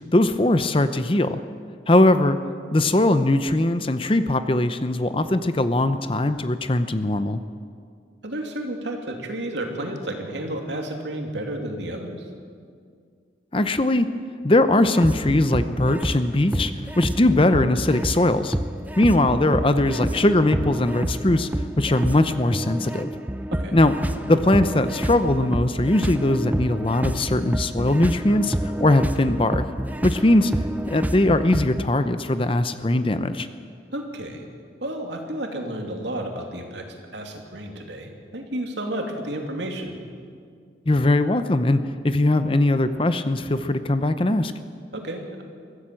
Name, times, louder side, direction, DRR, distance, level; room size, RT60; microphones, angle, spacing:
voice 1, 0.1-1.4 1.9-2.4 2.7-7.4 13.5-14.1 14.4-18.5 19.0-21.5 21.8-23.1 23.7-23.9 24.3-29.6 30.0-30.5 30.8-33.5 40.9-44.5, left 1 dB, 30° left, 11 dB, 0.7 m, -20 dB
voice 2, 8.2-12.3 23.5-23.8 33.9-34.4 34.8-40.0 44.9-45.4, right 1 dB, 70° right, 2 dB, 2.8 m, -31 dB
sound 1, 14.9-31.9, equal, 10° right, 0.6 m, -28 dB
24.0 x 14.5 x 7.7 m, 2.2 s
head